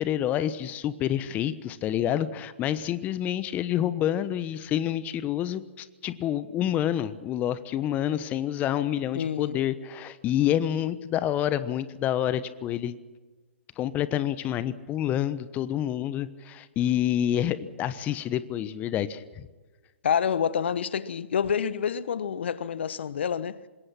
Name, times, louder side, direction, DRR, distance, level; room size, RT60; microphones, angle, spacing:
voice 1, 0.0-13.0 13.8-19.5, left 11 dB, 25° left, 1.1 m, -28 dB
voice 2, 9.1-9.6 20.0-23.6, left 7 dB, 60° left, 1.1 m, -27 dB
26.0 x 21.0 x 6.0 m
figure-of-eight pair, 125°, 7 cm